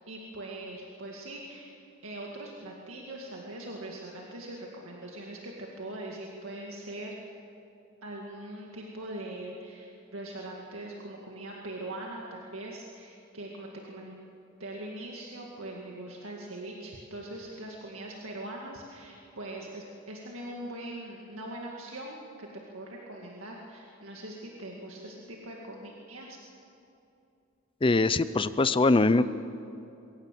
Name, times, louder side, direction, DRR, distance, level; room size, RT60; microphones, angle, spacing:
voice 1, 0.1-1.7 2.0-7.1 8.0-14.3 14.6-26.4, right 1 dB, 75° right, -2 dB, 2.1 m, -41 dB
voice 2, 27.8-29.2, left 3 dB, 25° left, 14 dB, 0.6 m, -22 dB
22.0 x 17.5 x 7.5 m, 2.7 s
head